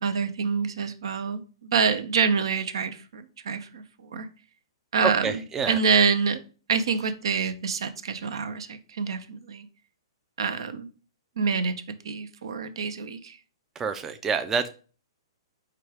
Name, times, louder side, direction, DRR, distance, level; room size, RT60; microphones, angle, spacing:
voice 1, 0.0-4.3 4.9-5.4 5.7-6.4 6.7-9.7 10.4-10.9 11.4-11.7 12.0-13.4, right 5 dB, 75° right, 11 dB, 0.5 m, -26 dB
voice 2, 5.0-5.8 13.8-14.7, right 5 dB, 15° right, 8 dB, 0.4 m, -27 dB
4.7 x 2.3 x 4.7 m, 0.36 s
hypercardioid pair, 130°, 3 cm